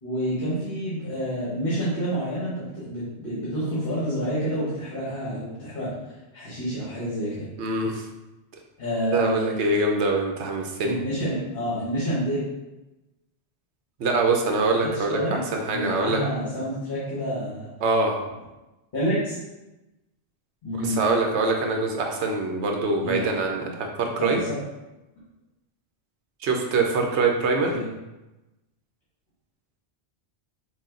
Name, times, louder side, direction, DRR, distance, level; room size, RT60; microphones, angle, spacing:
voice 1, 0.0-5.9 6.3-7.5 8.8-9.7 10.8-12.4 14.8-17.7 18.9-19.3 20.6-21.0 23.0-23.2 24.2-24.6 27.7-27.9, equal, 55° left, -9 dB, 1.5 m, -28 dB
voice 2, 7.6-8.1 9.1-11.0 14.0-16.2 17.8-18.2 20.8-24.4 26.4-27.7, right 3 dB, 90° right, 2 dB, 1.0 m, -24 dB
6.1 x 2.3 x 3.7 m, 1.0 s
omnidirectional pair, 1.1 m